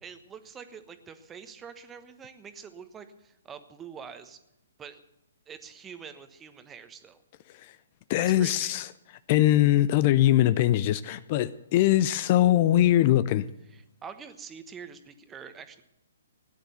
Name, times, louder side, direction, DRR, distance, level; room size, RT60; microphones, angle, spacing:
voice 1, 0.0-4.4 4.8-5.0 5.5-7.2 8.1-8.8 13.7-15.8, right 6 dB, 15° right, 1.2 m, -45 dB
voice 2, 8.1-8.9 9.3-13.5, left 13 dB, 35° left, 0.5 m, -22 dB
17.0 x 10.5 x 6.9 m
figure-of-eight pair, 125°, 0 cm